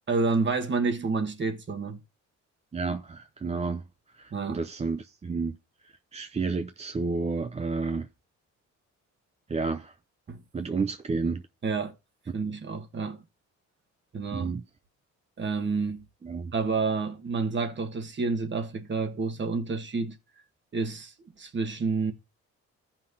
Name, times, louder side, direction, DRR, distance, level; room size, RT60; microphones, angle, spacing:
voice 1, 0.1-2.0 4.3-4.6 10.3-10.4 11.6-11.9 12.3-13.2 14.1-14.5 15.4-16.0 16.5-20.1 20.7-22.1, right 4 dB, 40° right, 1.4 m, -29 dB
voice 2, 2.7-3.8 4.2-5.5 6.1-8.1 9.5-9.9 10.5-11.4 14.3-14.6 16.2-16.5, right 4 dB, 20° right, 0.5 m, -30 dB
14.5 x 5.8 x 2.7 m
cardioid pair, 90°, 30 cm